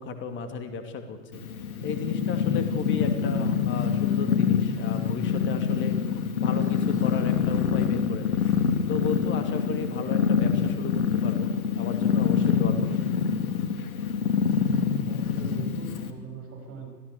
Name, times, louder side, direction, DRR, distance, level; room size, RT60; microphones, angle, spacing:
voice 1, 0.0-1.4 1.8-6.0 6.4-8.4 8.9-13.0, left 5 dB, 25° left, 7 dB, 2.5 m, -34 dB
Purr, 1.3-16.1, left 7 dB, 65° left, 2.6 m, -25 dB
voice 2, 14.9-16.9, right 5 dB, 30° right, 2 dB, 7.7 m, -42 dB
25.5 x 17.5 x 8.3 m, 1.4 s
figure-of-eight pair, 110°, 46 cm